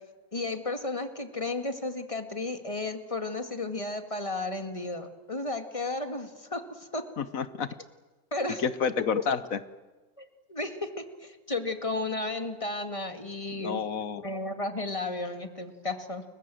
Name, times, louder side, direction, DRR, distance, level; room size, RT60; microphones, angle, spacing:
voice 1, 0.3-7.0 8.3-8.6 10.2-13.8 14.2-16.2, left 2 dB, 20° left, 7 dB, 2.1 m, -33 dB
voice 2, 7.2-7.7 8.6-9.6 13.6-14.2, left 6 dB, 70° left, 14 dB, 1.4 m, -29 dB
30.0 x 23.0 x 7.7 m, 1.3 s
omnidirectional pair, 1.5 m